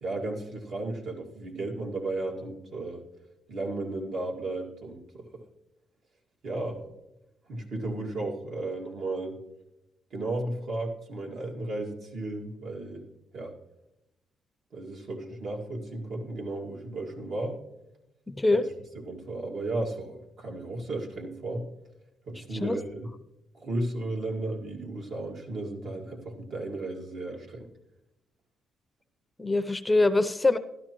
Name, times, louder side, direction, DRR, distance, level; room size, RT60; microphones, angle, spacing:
voice 1, 0.0-3.0 3.5-5.3 6.4-6.8 7.5-9.4 10.1-13.0 13.3-13.5 14.7-17.6 18.5-18.6 18.9-21.6 22.3-23.1 23.5-27.7, right 2 dB, 65° right, 0 dB, 2.0 m, -34 dB
voice 2, 18.3-18.6 22.5-22.8 29.4-30.6, left 2 dB, 15° left, 11 dB, 0.5 m, -24 dB
12.5 x 12.0 x 3.0 m, 0.88 s
cardioid pair, 90°, 0 cm